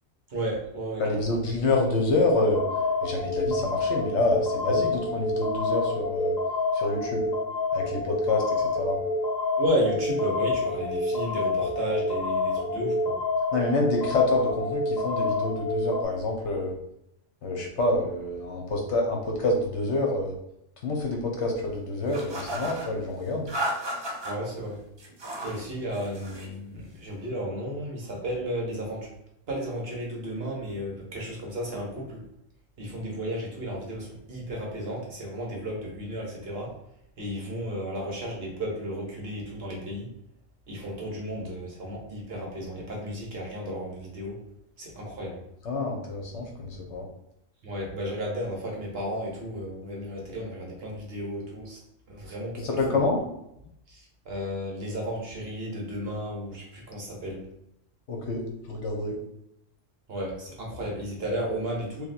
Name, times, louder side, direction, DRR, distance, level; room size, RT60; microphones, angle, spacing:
voice 1, 0.3-1.4 9.6-13.2 24.2-24.8 25.4-29.1 29.5-32.2 32.8-36.7 37.2-40.1 40.7-44.4 44.8-45.4 47.6-51.8 52.1-53.0 53.9-57.5 60.1-62.0, equal, 55° right, -2 dB, 1.2 m, -33 dB
voice 2, 1.0-2.6 3.0-6.3 6.7-7.2 7.7-9.0 13.5-16.7 17.4-20.3 20.8-23.5 45.6-47.1 52.6-53.2 58.1-59.2, left 2 dB, 65° left, 1 dB, 1.1 m, -27 dB
sound 1, 2.3-16.0, left 3 dB, 40° left, 0.7 m, -28 dB
sound 2, 22.1-22.9 23.5-24.3 25.0-25.6 25.9-26.5, right 1 dB, 30° right, 0.5 m, -33 dB
3.2 x 2.8 x 4.0 m, 0.78 s
omnidirectional pair, 1.3 m